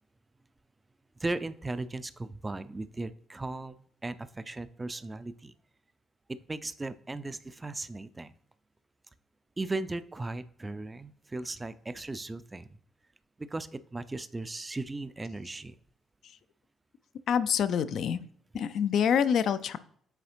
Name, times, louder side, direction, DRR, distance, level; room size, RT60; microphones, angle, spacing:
voice 1, 1.2-5.5 6.5-8.3 9.6-12.7 13.4-15.8, right 2 dB, 20° right, 15 dB, 0.4 m, -37 dB
voice 2, 17.3-18.2 18.5-19.8, left 8 dB, 55° left, 14 dB, 0.4 m, -26 dB
8.0 x 4.7 x 2.9 m, 0.65 s
figure-of-eight pair, 40°, 0 cm